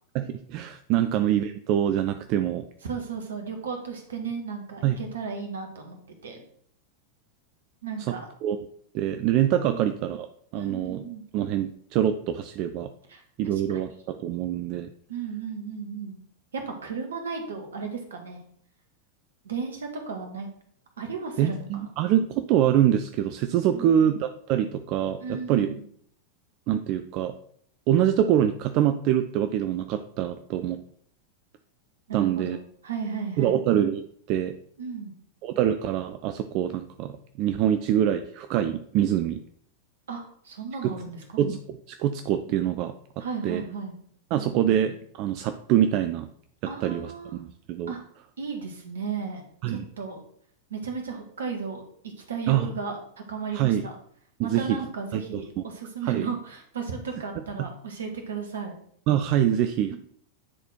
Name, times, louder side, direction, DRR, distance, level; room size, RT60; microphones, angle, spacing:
voice 1, 0.1-2.6 4.8-5.0 8.1-8.2 8.4-8.6 8.9-10.3 10.5-11.0 11.3-12.9 13.4-14.9 21.4-25.7 26.7-27.3 27.9-30.8 32.1-32.6 33.4-34.0 34.3-34.5 35.4-39.4 41.4-41.6 41.9-42.9 43.4-43.6 44.3-46.3 46.8-47.9 49.6-49.8 52.5-52.7 53.5-53.8 54.4-54.8 55.1-55.2 56.0-56.3 59.1-60.0, right 10 dB, 40° right, 9 dB, 0.4 m, -25 dB
voice 2, 2.8-6.4 7.8-8.3 9.7-9.9 10.5-11.2 13.1-13.6 15.1-16.2 16.5-18.4 19.4-20.5 21.0-21.8 23.7-24.2 25.2-25.8 32.1-33.6 34.8-35.1 40.1-41.2 43.2-43.9 46.7-47.4 47.9-48.0 48.4-50.2 50.7-53.9 54.4-58.8 59.9-60.0, right 5 dB, 65° right, 4 dB, 1.7 m, -35 dB
9.9 x 4.2 x 4.4 m, 0.62 s
figure-of-eight pair, 90°, 0 cm